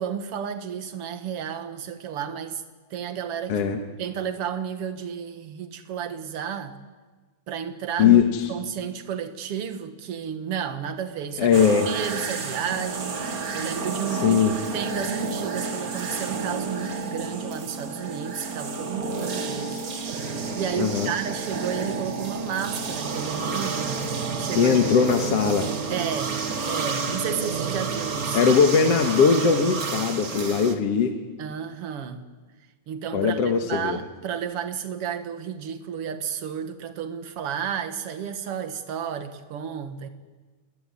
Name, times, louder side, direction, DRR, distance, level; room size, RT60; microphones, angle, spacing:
voice 1, 0.0-2.6 2.9-3.7 4.0-6.8 7.5-8.2 8.5-14.5 14.7-24.8 25.9-26.4 26.7-28.5 31.4-32.2 32.9-40.1, right 8 dB, 55° right, 8 dB, 2.4 m, -32 dB
voice 2, 3.5-3.8 8.0-8.5 11.4-11.9 14.1-14.5 19.6-19.8 20.8-21.1 24.6-25.7 28.3-31.2 33.1-34.0, left 6 dB, 60° left, 4 dB, 2.6 m, -20 dB
sound 1, 11.5-30.7, right 4 dB, 35° right, 1.6 m, -31 dB
sound 2, 13.0-28.0 28.3-28.4, right 1 dB, 5° right, 6.8 m, -40 dB
28.5 x 20.0 x 9.8 m, 1.3 s
omnidirectional pair, 3.4 m